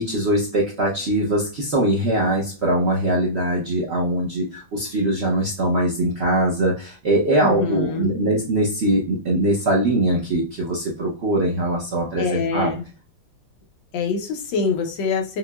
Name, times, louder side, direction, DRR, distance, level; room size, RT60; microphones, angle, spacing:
voice 1, 0.0-12.7, right 1 dB, 55° right, -3 dB, 0.7 m, -22 dB
voice 2, 7.4-8.2 12.2-12.8 13.9-15.4, left 5 dB, 80° left, 2 dB, 1.5 m, -25 dB
5.6 x 2.1 x 2.3 m, 0.36 s
omnidirectional pair, 2.0 m